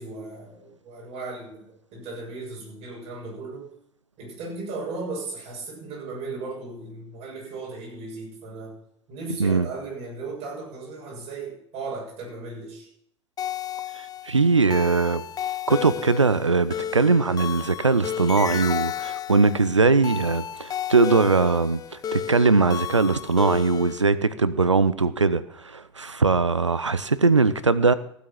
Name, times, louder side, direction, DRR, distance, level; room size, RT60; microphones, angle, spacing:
voice 1, 0.0-1.7 1.9-3.7 4.2-8.7 9.1-12.9, right 3 dB, 45° right, 6.8 m, -36 dB
sound 1, 13.4-24.0, left 9 dB, 25° left, 0.5 m, -33 dB
voice 2, 14.2-15.2 15.7-21.8 22.1-27.9, right 4 dB, 90° right, 0.7 m, -20 dB
15.5 x 8.3 x 5.8 m
figure-of-eight pair, 80°, 15 cm